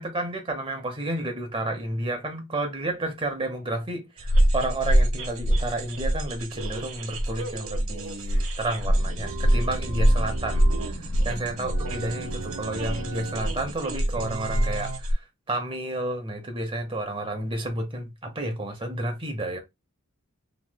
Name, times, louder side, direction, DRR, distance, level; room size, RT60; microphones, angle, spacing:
voice 1, 0.0-15.2 15.5-19.6, right 1 dB, 25° right, 0.8 m, -31 dB
sound 1, 4.2-15.1, equal, 65° right, 0.8 m, -25 dB
sound 2, 9.2-11.0 11.6-13.5 14.1-15.0, right 4 dB, 90° right, 0.5 m, -37 dB
3.2 x 3.0 x 2.2 m
head